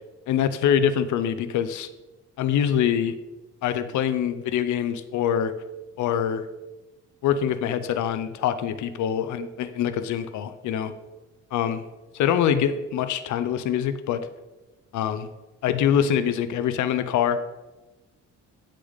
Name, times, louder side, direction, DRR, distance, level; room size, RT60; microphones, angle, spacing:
voice 1, 0.3-1.9 2.4-3.2 3.6-5.5 6.0-6.5 7.2-10.9 11.5-11.8 12.2-14.3 14.9-15.3 15.6-17.4, left 9 dB, 75° left, 11 dB, 0.6 m, -24 dB
8.0 x 6.5 x 4.0 m, 1.1 s
cardioid pair, 90°, 30 cm